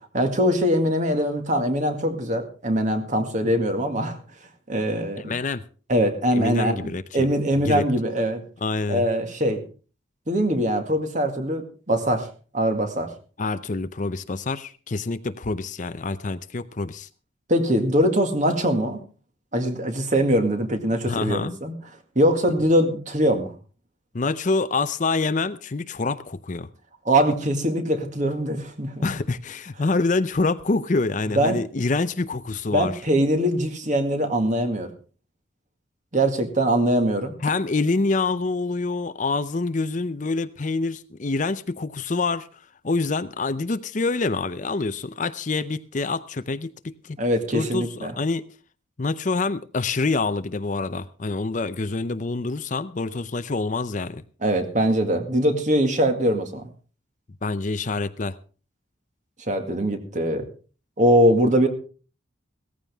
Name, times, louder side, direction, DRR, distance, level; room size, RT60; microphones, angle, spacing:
voice 1, 0.1-4.2 4.7-5.3 5.9-8.4 8.9-9.6 10.3-12.3 12.5-13.1 17.5-19.0 19.5-21.7 22.2-23.5 27.1-29.1 31.4-31.6 32.7-34.9 36.1-37.3 47.2-48.2 54.4-56.7 59.5-60.5 61.0-61.7, equal, 40° right, 6 dB, 2.0 m, -22 dB
voice 2, 5.3-5.6 6.3-7.2 7.7-7.8 8.6-9.0 13.4-17.1 21.0-21.6 24.1-26.7 29.0-32.9 37.4-42.5 42.8-47.2 47.5-48.4 49.0-54.2 57.4-58.3, left 3 dB, 40° left, 13 dB, 0.6 m, -26 dB
16.5 x 14.5 x 3.5 m, 0.38 s
head